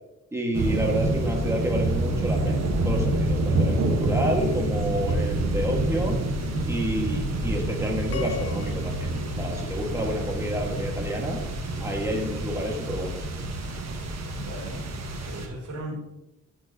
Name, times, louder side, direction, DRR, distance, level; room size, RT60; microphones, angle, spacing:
voice 1, 0.3-2.6 2.8-6.2 6.7-8.9 9.4-11.4 11.8-13.2, right 1 dB, 10° right, -1 dB, 1.6 m, -29 dB
sound 1, 0.5-15.5, right 1 dB, 60° right, 1.3 m, -27 dB
sound 2, 8.1-10.5, left 6 dB, 50° left, 0.5 m, -39 dB
voice 2, 14.4-16.1, right 1 dB, 80° right, -2 dB, 2.8 m, -38 dB
12.5 x 4.6 x 2.9 m, 0.95 s
cardioid pair, 95°, 30 cm